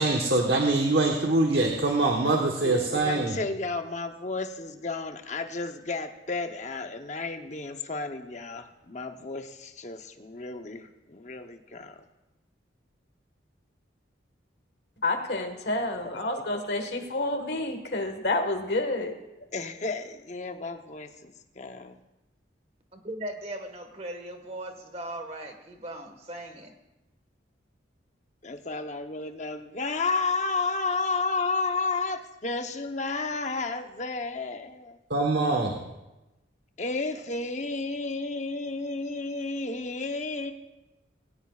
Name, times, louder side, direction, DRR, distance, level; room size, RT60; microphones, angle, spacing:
voice 1, 0.0-3.4 35.1-35.8, right 2 dB, 60° right, 1.2 m, -24 dB
voice 2, 2.6-12.0 16.0-16.2 19.5-22.0 28.4-35.0 36.8-40.5, left 3 dB, 40° left, 0.8 m, -32 dB
voice 3, 15.0-19.1, left 2 dB, 60° left, 1.5 m, -29 dB
voice 4, 22.9-26.7, right 1 dB, 35° right, 1.5 m, -38 dB
19.5 x 17.0 x 2.4 m
head